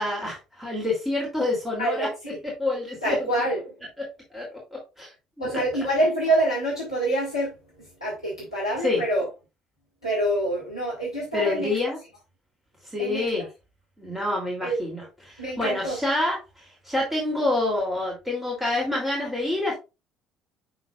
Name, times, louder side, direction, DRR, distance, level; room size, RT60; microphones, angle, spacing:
voice 1, 0.0-2.1 2.6-3.2 4.3-5.1 5.4-5.5 8.8-9.0 11.3-12.0 12.8-13.5 14.0-19.7, left 2 dB, 5° right, 3.0 m, -27 dB
voice 2, 1.8-2.4 3.0-3.8 5.4-9.3 10.0-11.7 13.0-13.3 14.6-14.8 15.4-16.0, right 1 dB, 90° left, 1.8 m, -26 dB
10.5 x 4.0 x 2.4 m
figure-of-eight pair, 55°, 2 cm